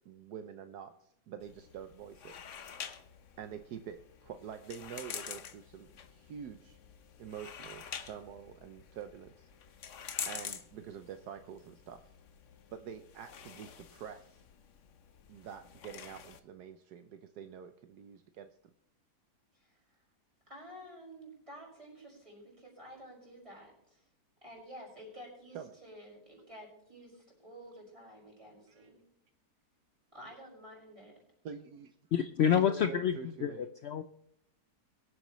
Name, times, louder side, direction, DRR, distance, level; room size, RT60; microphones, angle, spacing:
voice 1, 0.0-2.3 3.4-6.8 7.2-9.5 10.3-12.0 12.7-14.4 15.3-18.5 25.5-25.8 28.8-28.9 31.4-31.9 32.5-33.6, right 8 dB, 75° right, 9 dB, 1.3 m, -46 dB
sound 1, 1.4-16.4, left 8 dB, 55° left, 1.1 m, -47 dB
voice 2, 19.5-20.0 20.5-24.1 24.4-29.0 30.1-31.1, equal, 20° right, -3 dB, 5.8 m, -51 dB
voice 3, 32.1-34.0, left 9 dB, 75° left, 9 dB, 0.6 m, -28 dB
23.0 x 8.1 x 3.1 m, 0.74 s
omnidirectional pair, 1.8 m